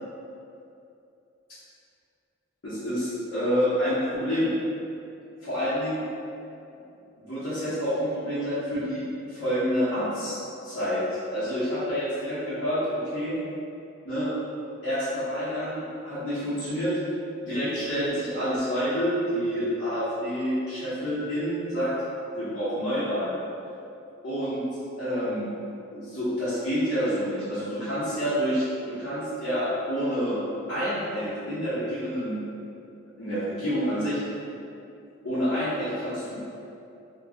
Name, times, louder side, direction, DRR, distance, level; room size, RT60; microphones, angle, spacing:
voice 1, 2.6-4.5 5.4-6.0 6.7-6.8 7.3-10.4 10.6-11.0 11.3-13.3 14.0-14.3 14.8-16.9 17.4-21.9 22.3-23.4 24.2-24.6 25.0-25.5 25.9-30.4 30.7-32.4 33.2-34.2 35.2-36.4, equal, 60° left, -15 dB, 1.0 m, -28 dB
2.9 x 2.4 x 3.6 m, 2.7 s
head